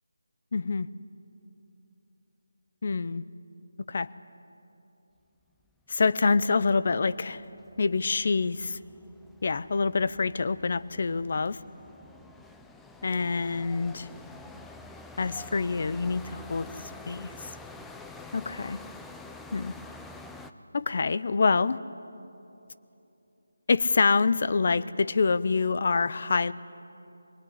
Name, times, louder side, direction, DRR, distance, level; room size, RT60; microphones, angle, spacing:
voice 1, 0.5-0.9 2.8-3.2 3.9-4.1 5.9-7.4 7.8-8.8 9.4-11.6 13.0-14.1 15.2-16.7 17.1-17.5 18.3-18.8 19.5-19.7 20.7-21.8 23.7-26.5, left 4 dB, 50° left, 16 dB, 0.7 m, -26 dB
sound 1, 7.1-20.5, left 2 dB, 5° left, 0.5 m, -47 dB
23.5 x 19.5 x 9.8 m, 2.9 s
figure-of-eight pair, 165°, 0 cm